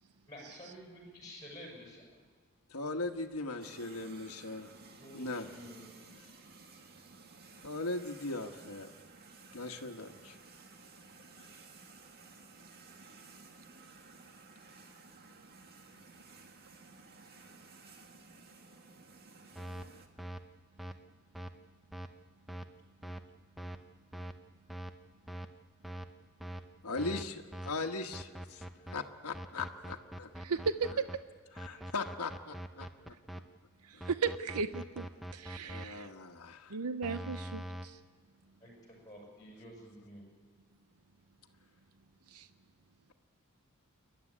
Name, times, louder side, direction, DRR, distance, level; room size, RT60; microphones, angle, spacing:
voice 1, 0.3-2.2 5.0-5.9 38.6-40.2, equal, 20° left, -2 dB, 6.5 m, -50 dB
voice 2, 2.7-4.7 5.1-5.5 7.6-8.9 9.5-10.4 11.4-11.5 26.8-30.3 31.6-33.1 33.9-34.0 35.6-36.8, left 3 dB, 85° left, 4 dB, 1.3 m, -39 dB
sound 1, 3.6-20.1, right 3 dB, 45° right, 1.9 m, -55 dB
sound 2, 19.5-19.9 20.2-20.4 20.8-20.9 21.3-21.5 21.9-22.1 22.5-22.6 23.0-23.2 23.6-23.8 24.1-24.3 24.7-24.9 25.3-25.5 25.8-26.1 26.4-26.6 27.0-27.2 27.5-27.7 28.1-28.9 29.3-31.2 31.6-33.4 34.0-35.8 37.0-37.9, right 1 dB, ahead, 0.8 m, -42 dB
voice 3, 30.4-30.9 31.7-31.8 33.8-36.1 36.7-38.0 42.3-42.5, right 5 dB, 85° right, 11 dB, 0.7 m, -36 dB
28.0 x 12.0 x 9.9 m, 1.5 s
head